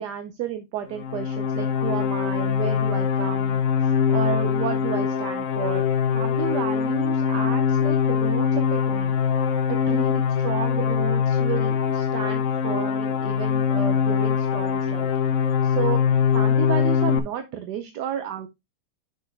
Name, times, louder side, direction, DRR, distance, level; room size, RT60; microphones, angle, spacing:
voice 1, 0.0-5.8 6.1-9.1 9.7-16.0 16.3-18.5, right 9 dB, 65° right, 8 dB, 1.1 m, -32 dB
sound 1, 0.9-17.2, left 7 dB, 85° left, 0.6 m, -23 dB
6.3 x 6.2 x 3.3 m, 0.22 s
omnidirectional pair, 2.3 m